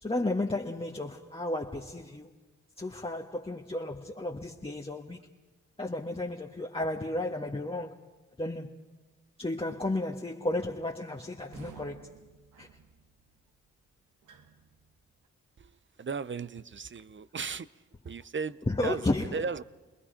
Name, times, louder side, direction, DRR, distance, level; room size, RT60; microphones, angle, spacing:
voice 1, 0.0-2.3 2.8-5.3 5.8-8.0 8.4-8.8 9.4-12.1 12.6-12.7 18.7-19.3, left 2 dB, 20° left, 1.5 m, -33 dB
sound 1, 11.4-15.3, right 5 dB, 80° right, 1.4 m, -53 dB
voice 2, 16.0-17.7 18.0-19.6, right 5 dB, 40° right, 0.7 m, -36 dB
29.5 x 21.0 x 5.2 m
supercardioid pair, 45°, 31 cm